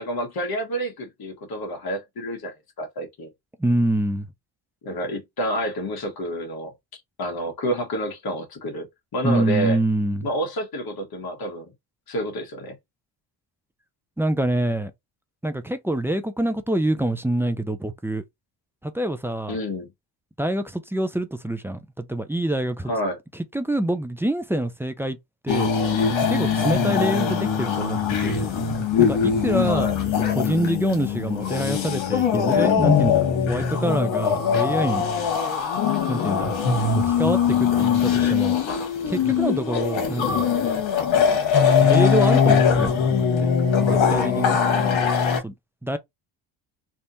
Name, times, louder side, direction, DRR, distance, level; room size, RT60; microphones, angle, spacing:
voice 1, 0.0-3.3 4.8-6.7 7.2-8.9 9.1-9.8 10.2-11.7 12.1-12.8 19.5-19.9 22.8-23.2 29.6-29.9 44.6-45.1, equal, 50° left, 1.5 m, -29 dB
voice 2, 3.6-4.3 9.2-10.3 14.2-14.9 15.4-18.2 18.8-19.6 20.4-22.9 23.5-25.2 25.4-25.7 26.3-28.5 29.0-29.9 30.3-35.1 36.1-36.6 37.0-38.6 39.1-40.5 41.8-43.5 43.8-44.6 45.4-45.5 45.8-46.0, right 1 dB, 5° right, 0.3 m, -25 dB
sound 1, 25.5-45.4, left 7 dB, 80° left, 1.4 m, -21 dB
3.4 x 2.8 x 2.6 m
cardioid pair, 105°, 45 cm